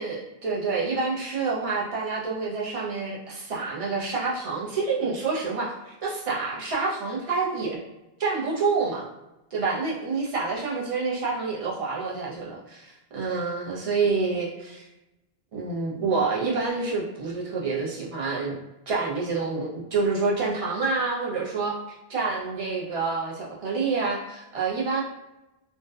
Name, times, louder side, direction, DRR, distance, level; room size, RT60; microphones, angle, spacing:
voice 1, 0.0-7.8 8.2-9.1 9.5-14.8 15.5-18.6 18.9-25.0, right 4 dB, 45° right, -4 dB, 0.5 m, -28 dB
2.6 x 2.1 x 2.3 m, 0.97 s
omnidirectional pair, 1.0 m